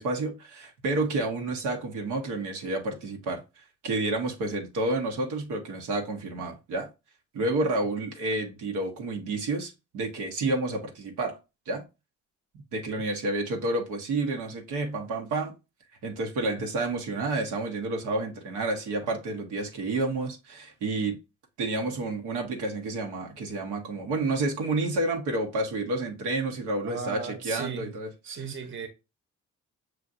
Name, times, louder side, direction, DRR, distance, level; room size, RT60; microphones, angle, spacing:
voice 1, 0.0-6.9 7.3-11.4 11.7-11.8 12.7-15.5 16.0-21.2 21.6-28.1, right 2 dB, 90° right, 0.9 m, -30 dB
voice 2, 26.8-28.0 28.2-28.9, right 5 dB, 40° right, 0.9 m, -36 dB
6.2 x 2.5 x 2.5 m
cardioid pair, 90°, 30 cm